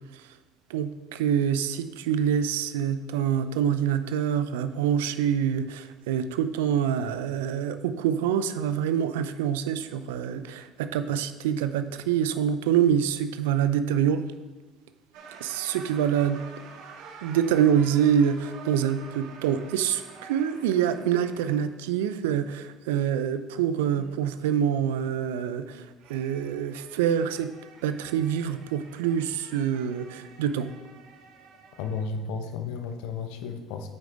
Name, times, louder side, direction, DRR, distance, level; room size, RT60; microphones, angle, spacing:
voice 1, 0.7-14.2 15.4-16.4 17.2-27.5 27.8-30.7, right 9 dB, 90° right, 11 dB, 0.4 m, -26 dB
sound 1, 15.1-21.8 23.7-24.9 26.0-32.1, right 5 dB, 75° right, 1.0 m, -48 dB
voice 2, 31.8-33.9, left 5 dB, 80° left, 7 dB, 0.8 m, -33 dB
8.7 x 4.8 x 3.9 m, 1.2 s
supercardioid pair, 75°, 0 cm